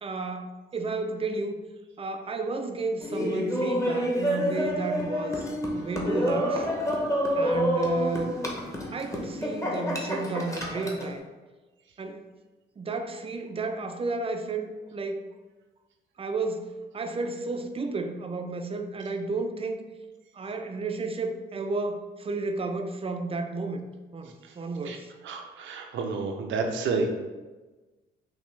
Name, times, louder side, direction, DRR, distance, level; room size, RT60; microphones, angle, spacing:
voice 1, 0.0-1.6 2.0-5.5 5.7-6.7 7.4-8.4 8.9-11.3 12.0-12.2 12.8-15.2 16.2-19.8 20.3-23.8 24.1-25.1, right 3 dB, 30° right, 6 dB, 0.5 m, -32 dB
Laughter, 3.0-11.1, equal, 15° left, 0.9 m, -28 dB
voice 2, 25.2-27.1, right 4 dB, 75° right, 3 dB, 0.7 m, -30 dB
5.3 x 2.8 x 3.3 m, 1.2 s
cardioid pair, 90°, 20 cm